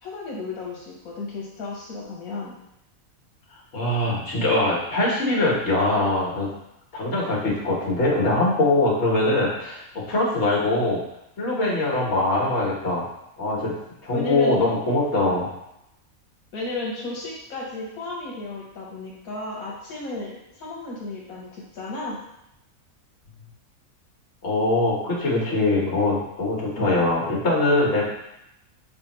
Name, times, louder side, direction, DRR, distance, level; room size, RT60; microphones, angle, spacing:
voice 1, 0.0-2.6 14.1-14.6 16.5-22.2 25.3-25.4 26.8-26.9, left 3 dB, 80° left, -4 dB, 1.3 m, -33 dB
voice 2, 3.7-6.5 6.9-11.0 11.4-13.0 13.4-13.7 14.0-15.5 24.4-28.1, left 2 dB, 55° left, -4 dB, 1.5 m, -22 dB
5.2 x 3.4 x 3.0 m, 0.83 s
omnidirectional pair, 1.5 m